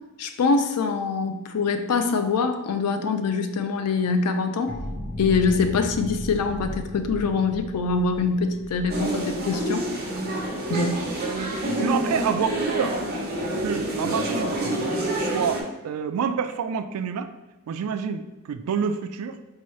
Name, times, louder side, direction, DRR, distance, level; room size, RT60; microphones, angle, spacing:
voice 1, 0.2-4.7 5.2-9.9 10.7-11.1, left 4 dB, 90° left, 8 dB, 0.4 m, -24 dB
sound 1, 4.7-10.4, left 1 dB, 55° left, 0.9 m, -36 dB
sound 2, 8.9-15.6, right 1 dB, 45° right, 0.7 m, -28 dB
voice 2, 11.2-13.0 13.6-14.6 15.2-17.3 17.7-19.4, right 6 dB, 70° right, 11 dB, 0.3 m, -28 dB
4.5 x 2.9 x 3.1 m, 1.0 s
head